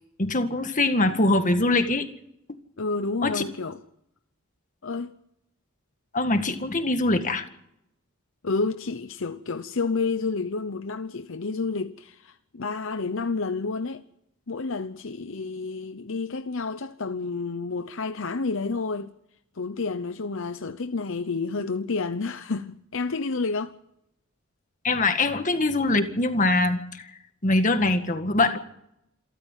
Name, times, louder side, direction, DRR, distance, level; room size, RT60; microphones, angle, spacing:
voice 1, 0.2-2.1 3.2-3.4 6.1-7.5 24.8-27.1 27.4-28.6, left 2 dB, 35° left, 1.9 m, -23 dB
voice 2, 2.8-3.8 4.8-5.1 8.4-14.0 14.5-19.1 19.6-23.7, left 4 dB, 65° left, 0.8 m, -30 dB
28.0 x 13.5 x 7.4 m
head